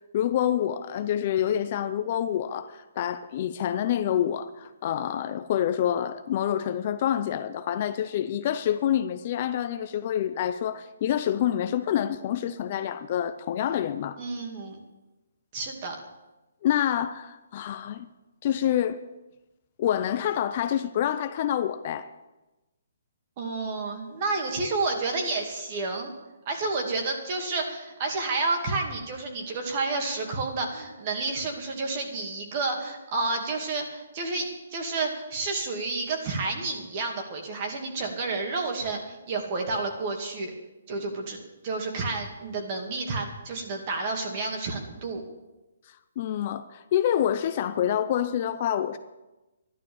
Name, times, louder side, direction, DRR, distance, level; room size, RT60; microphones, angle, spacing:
voice 1, 0.1-14.2 16.6-18.1 18.4-19.0 19.8-22.1 45.9-49.0, left 10 dB, 30° left, 0.6 m, -27 dB
voice 2, 14.2-14.8 15.5-16.0 23.4-26.1 26.5-40.5 40.9-45.2, right 3 dB, 30° right, 2.3 m, -30 dB
13.0 x 11.5 x 7.1 m
hypercardioid pair, 170°, 0 cm